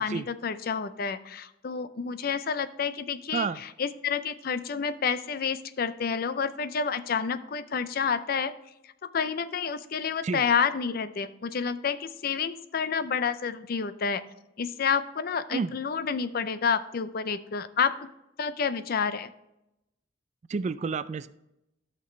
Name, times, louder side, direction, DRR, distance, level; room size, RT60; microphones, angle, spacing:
voice 1, 0.0-8.5 9.1-14.2 14.6-18.1 18.4-19.3, left 6 dB, 50° left, 13 dB, 0.5 m, -29 dB
voice 2, 20.5-21.3, right 5 dB, 40° right, 15 dB, 0.3 m, -29 dB
12.5 x 5.9 x 3.1 m, 0.89 s
head